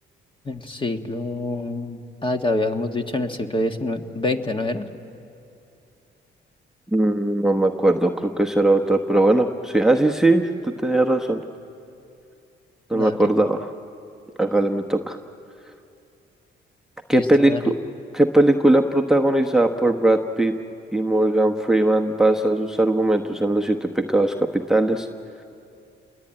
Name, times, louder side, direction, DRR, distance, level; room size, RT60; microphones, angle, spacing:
voice 1, 0.4-4.9 12.9-13.3 17.1-17.6, left 2 dB, 25° left, 5 dB, 1.6 m, -26 dB
voice 2, 6.9-11.4 12.9-13.7 14.4-15.2 17.1-17.7 18.1-20.5 20.9-25.1, right 1 dB, 5° right, 5 dB, 1.1 m, -19 dB
28.5 x 21.5 x 8.9 m, 2.6 s
cardioid pair, 90°, 20 cm